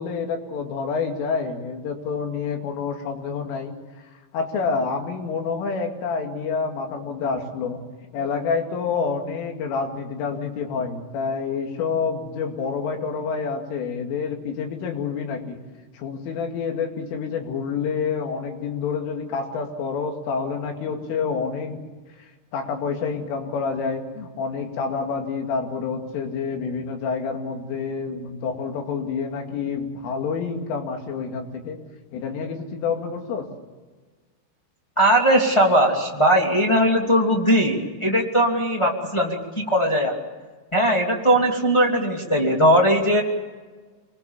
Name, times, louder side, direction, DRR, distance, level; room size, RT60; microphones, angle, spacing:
voice 1, 0.0-3.7 4.3-7.8 8.1-15.6 15.9-21.8 22.5-31.8 32.1-33.5, left 5 dB, 90° left, 3 dB, 5.0 m, -28 dB
voice 2, 35.0-40.1 40.7-43.2, equal, 10° left, -2 dB, 1.3 m, -19 dB
27.0 x 21.0 x 7.3 m, 1.4 s
omnidirectional pair, 5.5 m